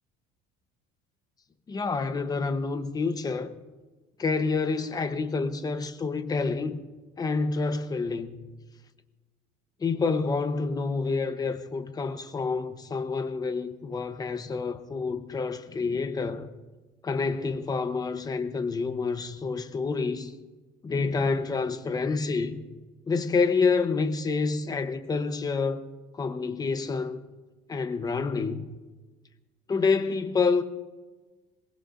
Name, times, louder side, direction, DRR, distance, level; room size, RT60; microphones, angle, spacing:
voice 1, 1.7-3.5 4.2-6.8 7.2-8.4 9.8-16.5 17.0-20.3 20.8-22.6 23.1-25.9 26.1-27.2 27.7-28.7 29.7-30.6, left 4 dB, 20° left, 0.8 m, -28 dB
22.5 x 19.0 x 2.5 m
cardioid pair, 150°, 20 cm